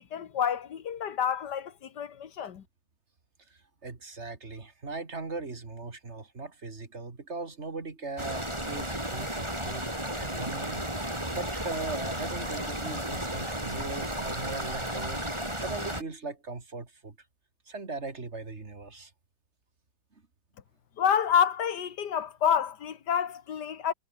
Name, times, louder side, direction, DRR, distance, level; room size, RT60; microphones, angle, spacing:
voice 1, 0.0-2.6 21.0-23.9, left 8 dB, 85° left, 2.0 m, -28 dB
voice 2, 3.5-9.9 10.1-17.2 17.7-19.1, right 3 dB, 40° right, 2.7 m, -39 dB
sound 1, 8.2-16.0, right 1 dB, 15° right, 7.3 m, -33 dB
omnidirectional pair, 1.8 m